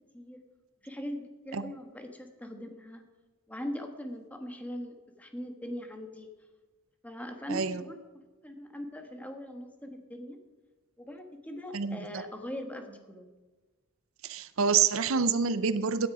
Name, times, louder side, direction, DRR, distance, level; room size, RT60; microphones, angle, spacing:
voice 1, 0.8-3.0 3.5-6.3 7.0-10.4 11.0-13.3, equal, 5° left, 4 dB, 1.4 m, -41 dB
voice 2, 7.5-7.8 11.7-12.2 14.2-16.1, right 6 dB, 75° right, 12 dB, 0.6 m, -27 dB
16.0 x 9.6 x 4.9 m, 1.3 s
head